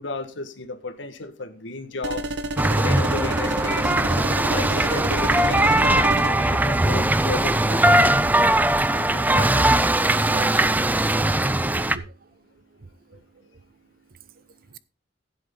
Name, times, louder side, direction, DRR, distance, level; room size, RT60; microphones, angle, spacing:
voice 1, 0.0-2.3 2.8-3.9 4.5-8.2 8.9-9.7, left 2 dB, 90° left, 1.5 m, -33 dB
sound 1, 2.0-6.3, right 2 dB, 70° right, 1.0 m, -30 dB
sound 2, 2.6-12.0, right 1 dB, 10° right, 0.5 m, -20 dB
voice 2, 10.2-12.1, right 5 dB, 50° right, 0.7 m, -40 dB
15.0 x 7.9 x 3.8 m
head